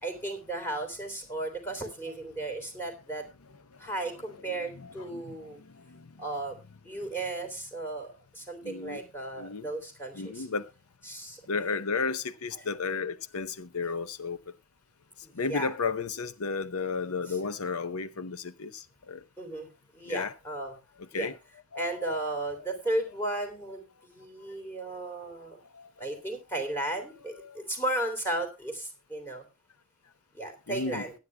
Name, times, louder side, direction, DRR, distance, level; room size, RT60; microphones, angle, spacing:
voice 1, 0.0-3.2 3.8-5.6 6.2-6.6 6.8-10.5 11.1-11.4 15.2-15.7 17.3-17.4 19.4-20.7 21.1-21.3 21.7-25.6 26.0-29.4 30.3-31.1, right 1 dB, 10° left, 3.3 m, -35 dB
voice 2, 4.5-5.5 5.7-6.1 8.6-9.0 9.4-9.7 10.1-10.7 11.5-14.4 15.3-19.2 20.1-20.3 21.1-21.3 21.7-22.2 25.7-26.2 27.4-27.6 30.7-31.0, left 4 dB, 90° left, 0.8 m, -33 dB
22.5 x 9.3 x 2.2 m
head